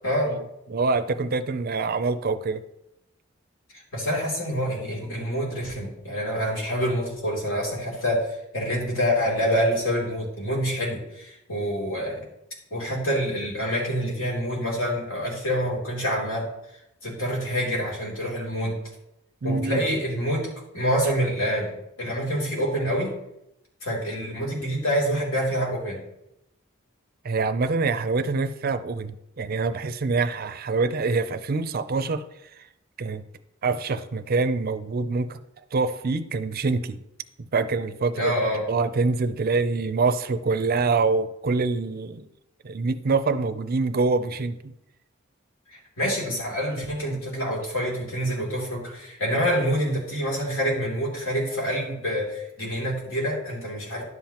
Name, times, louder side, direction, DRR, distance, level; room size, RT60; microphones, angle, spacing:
voice 1, 0.0-0.4 3.9-12.2 12.7-16.5 17.0-18.8 19.4-20.5 20.7-21.7 22.0-23.1 23.8-26.0 38.2-38.6 45.7-54.0, equal, 75° left, -3 dB, 2.9 m, -26 dB
voice 2, 0.7-2.6 19.4-19.8 27.2-32.2 33.0-33.2 33.6-35.4 35.7-37.0 37.5-38.3 38.7-42.3 42.6-44.6, right 4 dB, 45° right, 12 dB, 0.5 m, -25 dB
11.0 x 7.4 x 2.9 m, 0.84 s
head